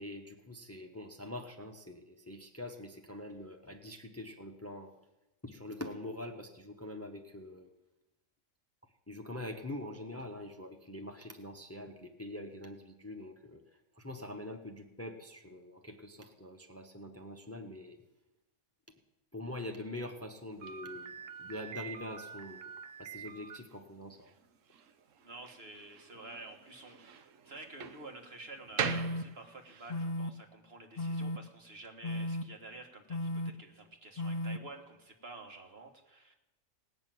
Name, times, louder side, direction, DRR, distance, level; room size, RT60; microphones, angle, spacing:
voice 1, 0.0-4.9 5.4-7.7 9.1-18.0 19.3-21.1 21.4-22.7 23.0-24.3, left 1 dB, 15° left, 5 dB, 0.9 m, -44 dB
Slam, 20.6-29.9, right 7 dB, 90° right, 1.2 m, -43 dB
voice 2, 25.2-36.3, right 2 dB, 55° right, 3 dB, 1.9 m, -50 dB
sound 1, 28.8-29.2 29.9-30.3 31.0-31.4 32.0-32.4 33.1-33.5 34.2-34.6, left 1 dB, 55° left, 0.4 m, -35 dB
18.5 x 6.5 x 9.1 m, 0.98 s
omnidirectional pair, 1.3 m